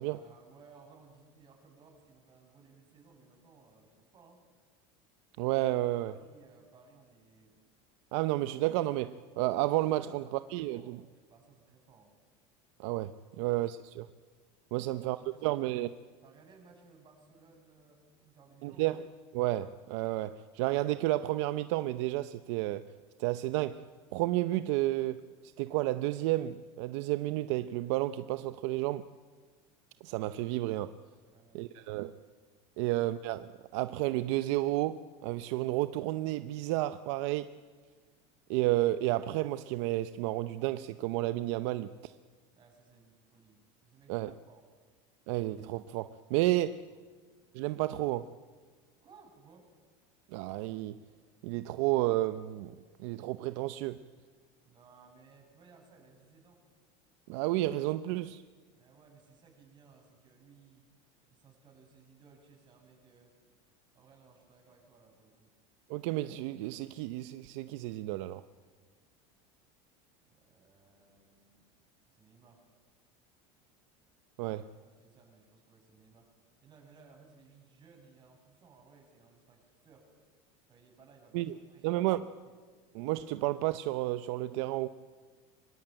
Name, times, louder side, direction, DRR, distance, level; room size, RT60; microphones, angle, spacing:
voice 1, 0.0-4.4 6.1-7.6 10.0-11.0 11.3-12.1 14.8-15.9 16.2-19.0 31.3-32.1 42.6-44.7 46.9-47.0 49.0-49.7 54.7-56.6 58.7-60.9 61.3-63.3 63.9-65.5 70.2-71.6 72.1-72.6 74.4-76.3 76.6-80.1 80.7-82.0 82.5-82.6, right 4 dB, 30° right, 7.3 m, -60 dB
voice 2, 5.4-6.1 8.1-10.2 10.5-11.0 12.8-14.1 14.7-15.9 18.6-19.0 19.3-22.9 23.2-23.8 24.1-25.2 25.6-29.0 30.0-31.0 31.5-32.1 32.8-37.5 38.5-42.1 44.1-44.3 45.3-46.8 47.5-48.3 50.3-51.0 51.4-54.0 57.3-58.4 65.9-68.4 74.4-74.6 81.3-81.5 81.8-82.3 82.9-84.9, right 16 dB, 70° right, 0.7 m, -31 dB
24.0 x 22.0 x 9.0 m
supercardioid pair, 140°, 15 cm